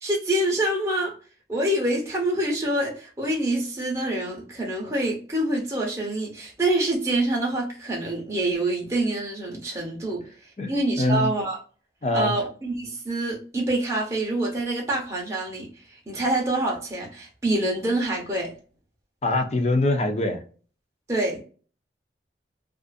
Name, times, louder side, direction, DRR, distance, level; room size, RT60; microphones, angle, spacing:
voice 1, 0.0-1.2 1.5-10.2 10.7-11.6 12.1-18.5 21.1-21.4, right 1 dB, 15° right, 0.7 m, -26 dB
voice 2, 10.6-11.3 12.0-12.3 19.2-20.4, left 2 dB, 35° left, 0.5 m, -23 dB
2.4 x 2.4 x 2.3 m
head